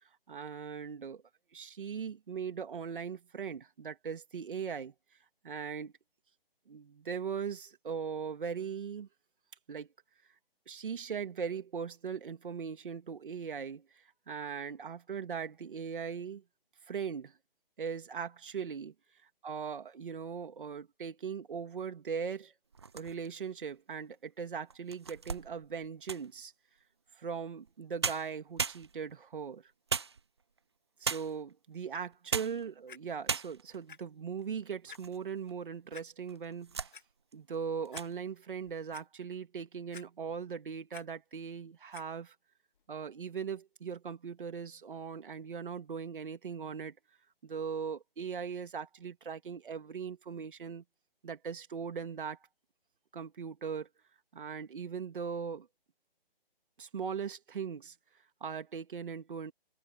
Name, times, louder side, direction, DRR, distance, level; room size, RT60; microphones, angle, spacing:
voice 1, 0.3-1.2 1.5-4.9 5.4-5.9 6.7-9.1 9.7-9.9 10.7-16.4 16.9-17.3 17.8-18.9 19.4-22.5 22.9-26.5 27.2-29.7 31.0-36.9 37.3-42.3 42.9-47.0 47.4-50.8 51.2-52.4 53.1-53.9 54.3-55.7 56.8-57.9 58.4-59.5, right 6 dB, 60° right, 2.6 m, -39 dB
sound 1, 22.7-23.5 24.1-24.2 24.7-26.4 27.7-27.8 28.0-29.2 29.9-30.6 31.0-31.5 32.1-32.7 32.9-33.0 33.3-33.8 34.4-35.2 35.5-35.6 36.3-37.0 37.3-37.5 37.8-38.1, right 5 dB, 30° right, 0.4 m, -37 dB
Clock, 32.9-33.0 33.9-34.0 34.4-34.5 34.9-35.0 35.9-36.1 36.7-37.0 37.5-37.6 37.9-38.0 38.5-39.0 39.9-40.4 40.7-41.0 41.9-42.0 42.8-42.9, left 7 dB, 55° left, 2.0 m, -50 dB
open air
hypercardioid pair, 160°, 30 cm